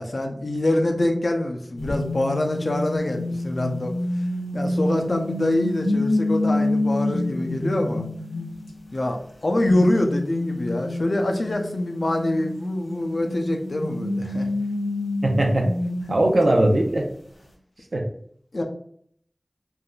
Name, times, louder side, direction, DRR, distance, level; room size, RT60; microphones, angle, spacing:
voice 1, 0.0-3.9 4.5-8.1 8.9-14.5 18.5-18.6, left 1 dB, 70° left, 4 dB, 0.5 m, -25 dB
sound 1, 1.8-8.9 9.7-16.8, left 2 dB, 85° left, 1.1 m, -28 dB
voice 2, 15.2-15.7 16.1-17.1 17.9-18.0, right 1 dB, 80° right, 2 dB, 0.5 m, -19 dB
3.3 x 2.5 x 2.2 m, 0.64 s
wide cardioid pair, 55°, 0 cm